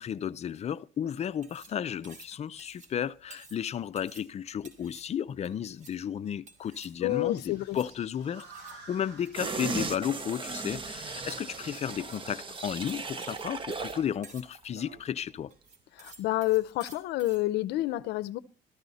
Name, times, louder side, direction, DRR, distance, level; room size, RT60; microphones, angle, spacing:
voice 1, 0.0-15.5, left 9 dB, 40° left, 0.5 m, -33 dB
sound 1, 1.2-17.4, right 3 dB, 45° right, 2.6 m, -54 dB
voice 2, 7.0-7.8 16.0-18.4, left 17 dB, 85° left, 0.6 m, -29 dB
sound 2, 7.1-13.6, right 3 dB, 80° right, 4.6 m, -54 dB
sound 3, 9.3-14.1 14.5-14.6, right 3 dB, 30° right, 1.1 m, -36 dB
13.5 x 13.5 x 4.1 m
cardioid pair, 110°, 17 cm